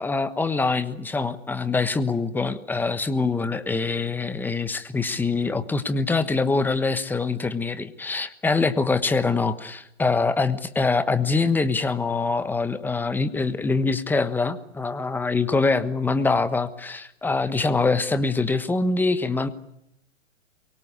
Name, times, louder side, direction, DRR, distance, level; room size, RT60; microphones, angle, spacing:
voice 1, 0.0-19.5, left 3 dB, 5° left, 12 dB, 1.2 m, -24 dB
24.0 x 23.5 x 8.5 m, 0.80 s
hypercardioid pair, 135°, 39 cm